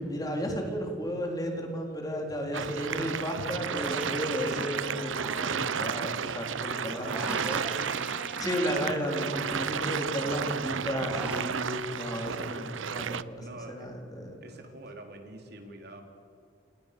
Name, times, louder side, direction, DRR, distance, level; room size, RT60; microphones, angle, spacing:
voice 1, 0.0-7.6 8.4-14.4, equal, 20° left, 2 dB, 4.0 m, -33 dB
sound 1, 2.5-13.2, right 6 dB, 75° right, 0.8 m, -33 dB
Human voice, 3.6-6.3 6.5-10.0 10.4-11.5, right 1 dB, 5° right, 1.0 m, -44 dB
voice 2, 6.6-7.4 13.4-13.9 14.4-16.0, right 2 dB, 55° right, 3 dB, 4.0 m, -45 dB
29.5 x 28.5 x 6.9 m, 2.3 s
head